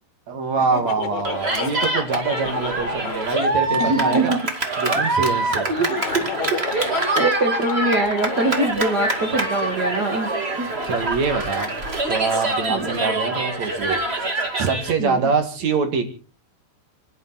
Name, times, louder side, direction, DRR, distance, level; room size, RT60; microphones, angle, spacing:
voice 1, 0.3-4.4 4.8-5.7 10.9-11.7 12.1-14.0 14.6-16.1, right 4 dB, 50° right, 5 dB, 3.1 m, -24 dB
Laughter, 0.6-4.3 5.8-8.7, left 10 dB, 70° left, 3.1 m, -32 dB
Cheering, 1.2-14.9, right 2 dB, 25° right, 1.3 m, -25 dB
voice 2, 3.8-4.5 5.2-10.3 10.6-10.7 12.7-12.9 15.0-15.3, right 2 dB, 70° right, 4 dB, 0.9 m, -24 dB
29.5 x 10.5 x 4.2 m, 0.38 s
omnidirectional pair, 4.8 m